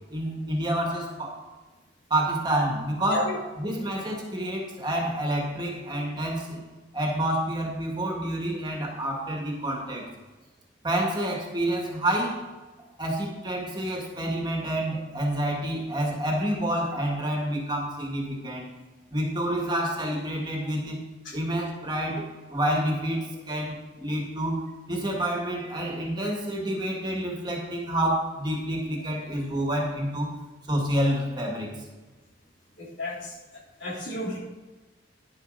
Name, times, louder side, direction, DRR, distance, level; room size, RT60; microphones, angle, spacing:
voice 1, 0.1-1.4 2.1-6.6 6.9-10.1 10.8-12.4 13.0-18.7 19.1-21.0 21.3-24.6 24.9-30.3 30.7-31.7, right 1 dB, 25° right, 0 dB, 2.0 m, -28 dB
voice 2, 32.8-33.3 33.8-34.4, left 2 dB, 75° left, -4 dB, 3.3 m, -32 dB
10.5 x 8.6 x 4.1 m, 1.2 s
head